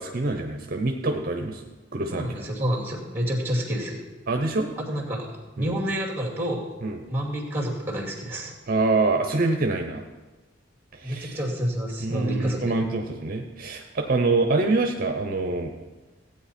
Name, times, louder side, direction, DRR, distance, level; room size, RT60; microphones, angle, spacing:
voice 1, 0.0-1.6 1.9-2.3 4.3-4.7 5.6-5.8 6.8-7.0 8.7-10.0 10.9-11.4 12.0-15.7, right 3 dB, 50° right, 4 dB, 0.8 m, -25 dB
voice 2, 2.1-4.0 4.9-5.3 5.5-6.7 7.1-8.5 11.0-12.6, equal, 10° right, -2 dB, 2.4 m, -28 dB
16.0 x 8.9 x 4.3 m, 1.2 s
head